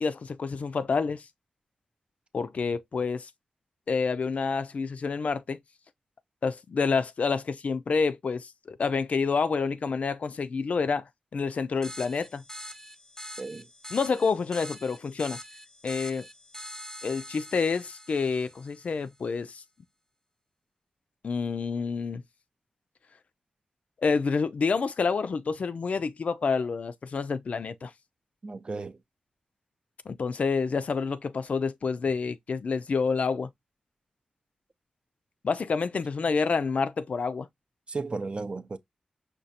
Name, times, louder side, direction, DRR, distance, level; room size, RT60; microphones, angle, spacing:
voice 1, 0.0-1.3 2.3-3.3 3.9-5.6 6.4-12.4 13.9-15.4 15.8-16.3 17.0-19.6 21.2-22.2 24.0-27.9 30.1-33.5 35.4-37.5, left 5 dB, 65° left, 0.3 m, -28 dB
sound 1, 11.8-19.0, equal, 20° left, 0.6 m, -44 dB
voice 2, 28.4-29.0 37.9-38.8, right 3 dB, 45° right, 0.5 m, -34 dB
5.1 x 2.3 x 2.7 m
cardioid pair, 60°, 2 cm